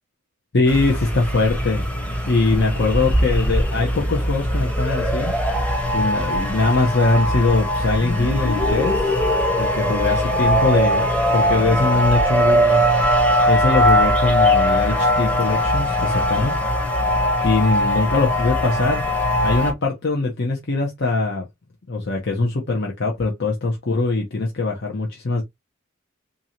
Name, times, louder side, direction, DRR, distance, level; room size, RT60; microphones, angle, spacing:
voice 1, 0.5-1.9 2.3-5.3 5.9-9.0 9.5-11.1 11.3-12.8 13.5-16.6 17.4-19.0 19.4-21.5 21.9-25.4, left 3 dB, 55° left, 0.9 m, -21 dB
sound 1, 0.7-19.7, equal, 5° left, 0.9 m, -20 dB
3.7 x 2.9 x 2.9 m
head